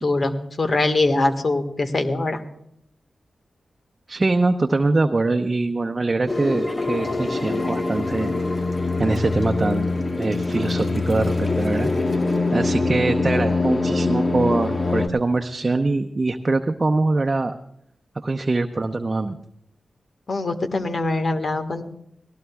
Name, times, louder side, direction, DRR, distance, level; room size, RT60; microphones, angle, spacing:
voice 1, 0.0-2.4 20.3-21.8, left 2 dB, 60° left, 7 dB, 1.6 m, -23 dB
voice 2, 4.1-8.3 9.0-9.9 10.2-11.9 12.5-17.5 18.2-19.3, right 3 dB, 40° right, 5 dB, 0.8 m, -23 dB
sound 1, 6.3-15.1, left 3 dB, 40° left, 1.4 m, -23 dB
19.5 x 18.5 x 2.4 m, 0.76 s
cardioid pair, 40°, 0 cm